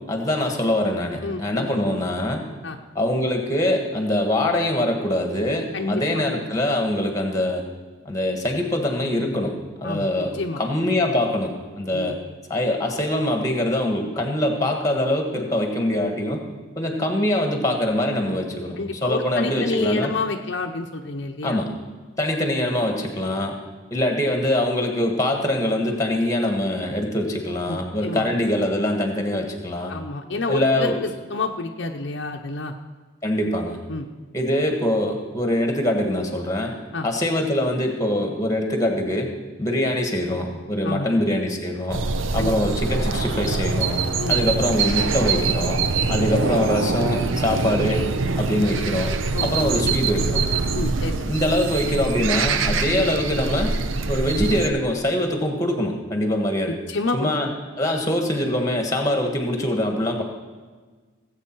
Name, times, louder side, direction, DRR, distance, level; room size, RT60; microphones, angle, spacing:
voice 1, 0.1-2.4 2.9-7.6 8.0-9.5 9.8-12.2 12.5-16.4 16.8-20.1 21.4-21.7 22.2-23.5 23.9-29.9 30.5-31.0 33.2-33.8 34.3-36.7 37.0-39.3 39.6-42.0 42.3-44.0 44.3-45.8 46.1-48.0 48.4-49.1 49.4-50.4 51.3-53.7 54.1-56.8 57.1-57.5 57.8-60.2, left 1 dB, 15° left, 3 dB, 1.5 m, -23 dB
voice 2, 1.2-1.7 2.6-2.8 5.7-6.2 9.8-10.6 11.9-12.1 18.8-21.6 27.7-28.3 29.9-30.9 31.3-32.7 33.9-34.1 36.9-37.1 40.8-41.1 42.4-42.6 44.2-44.4 49.3-49.5 49.9-50.0 50.7-51.1 56.9-57.3, left 3 dB, 60° left, 3 dB, 0.7 m, -28 dB
sound 1, 41.9-54.7, right 4 dB, 70° right, 0.6 m, -24 dB
18.0 x 8.2 x 4.6 m, 1.4 s
head